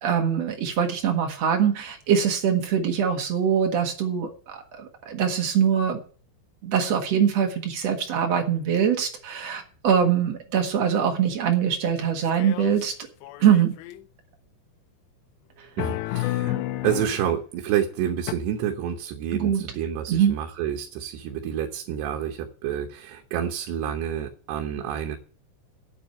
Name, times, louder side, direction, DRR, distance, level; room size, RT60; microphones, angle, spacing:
voice 1, 0.0-6.0 6.6-12.9 13.4-13.7 16.4-16.6 19.3-19.6 20.1-20.4, right 8 dB, 55° right, 3 dB, 2.1 m, -23 dB
sound 1, 12.4-12.9 13.2-14.0 15.8-17.2 18.3-18.4, left 16 dB, 85° left, 2.8 m, -30 dB
voice 2, 15.8-16.5 16.8-25.2, right 9 dB, 80° right, 3 dB, 3.1 m, -28 dB
8.6 x 8.4 x 8.7 m, 0.41 s
omnidirectional pair, 4.9 m